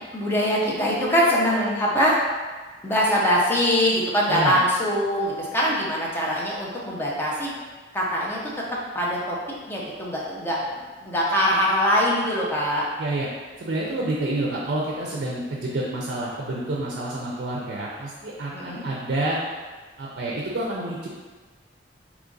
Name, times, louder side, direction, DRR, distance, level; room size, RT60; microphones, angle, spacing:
voice 1, 0.1-2.2 2.8-7.5 7.9-8.6 8.9-9.4 9.7-12.9 18.5-18.9, equal, 15° left, -5 dB, 0.6 m, -23 dB
voice 2, 4.3-4.6 13.0-13.3 13.6-19.4 20.0-21.1, right 2 dB, 60° right, -3 dB, 0.5 m, -28 dB
3.0 x 2.4 x 3.8 m, 1.4 s
head